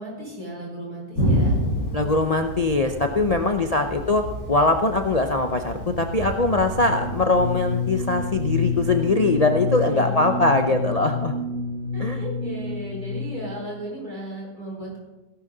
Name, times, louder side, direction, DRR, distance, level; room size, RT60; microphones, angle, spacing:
voice 1, 0.0-1.6 3.1-3.7 9.6-10.5 11.9-15.0, right 1 dB, 60° right, -4 dB, 5.6 m, -36 dB
Thunder, 1.1-10.6, equal, 40° left, 4.9 m, -30 dB
voice 2, 1.9-11.3 12.0-12.2, left 3 dB, 70° left, 5 dB, 0.3 m, -22 dB
sound 1, 5.9-13.6, left 3 dB, 45° right, 1.5 m, -28 dB
17.0 x 12.0 x 4.0 m, 1.1 s
omnidirectional pair, 1.8 m